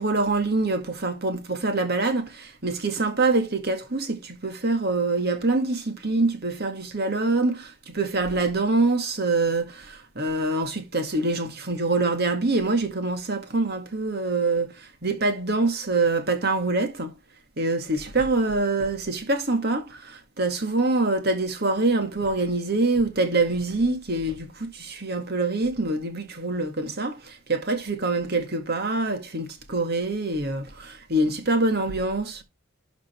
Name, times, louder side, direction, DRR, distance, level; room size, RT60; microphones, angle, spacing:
voice 1, 0.0-17.1 17.6-32.4, right 2 dB, 50° right, 2.0 m, -25 dB
12.5 x 4.2 x 4.5 m
head